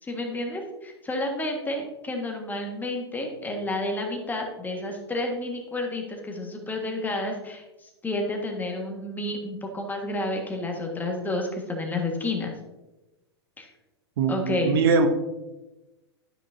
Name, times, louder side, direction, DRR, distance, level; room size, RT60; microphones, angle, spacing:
voice 1, 0.0-12.5 13.6-13.7 14.3-14.8, left 2 dB, 10° left, 2 dB, 1.5 m, -30 dB
voice 2, 14.2-15.1, right 5 dB, 60° right, 7 dB, 0.9 m, -22 dB
12.5 x 5.4 x 2.6 m, 1.0 s
figure-of-eight pair, 100°, 14 cm